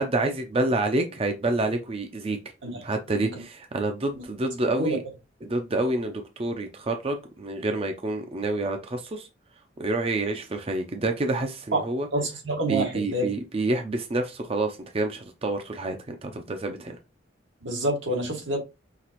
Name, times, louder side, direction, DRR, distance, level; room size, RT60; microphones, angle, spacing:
voice 1, 0.0-2.4 2.8-5.0 5.4-9.3 9.8-12.1 12.7-17.0, right 2 dB, 30° right, 0.5 m, -28 dB
voice 2, 12.1-13.3 17.6-18.6, right 1 dB, 85° right, 1.8 m, -27 dB
5.8 x 2.9 x 2.9 m
head